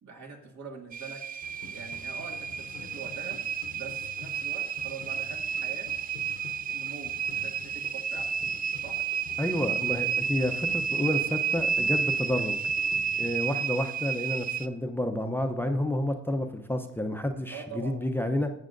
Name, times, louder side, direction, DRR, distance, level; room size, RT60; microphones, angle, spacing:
voice 1, 0.0-1.2 1.7-3.4 3.7-5.9 6.7-8.4 8.8-9.0 17.5-18.1, right 5 dB, 65° right, 1 dB, 2.1 m, -44 dB
sound 1, 0.9-14.7, right 7 dB, 30° right, 0.4 m, -31 dB
sound 2, 1.4-13.4, left 5 dB, 60° left, 0.9 m, -49 dB
voice 2, 9.4-12.6 13.2-18.5, left 1 dB, 5° left, 5 dB, 0.7 m, -30 dB
14.0 x 7.3 x 2.6 m, 0.83 s
cardioid pair, 90°, 30 cm